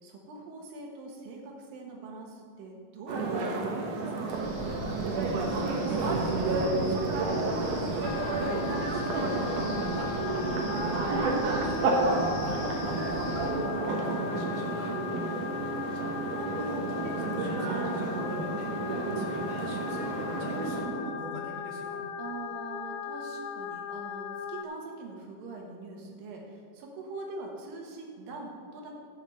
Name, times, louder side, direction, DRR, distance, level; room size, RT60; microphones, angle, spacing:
voice 1, 0.0-4.5 15.1-15.6 22.2-28.9, right 3 dB, 85° right, 0 dB, 3.2 m, -43 dB
sound 1, 3.1-20.8, right 3 dB, 70° right, 2.6 m, -31 dB
Wind, 4.3-13.5, equal, 25° right, 3.3 m, -39 dB
voice 2, 5.5-10.1 10.7-14.9 15.9-18.7 19.2-22.0, equal, 45° right, -2 dB, 2.1 m, -41 dB
sound 2, 8.0-24.6, left 8 dB, 85° left, 2.4 m, -38 dB
12.0 x 5.7 x 7.7 m, 2.1 s
omnidirectional pair, 3.9 m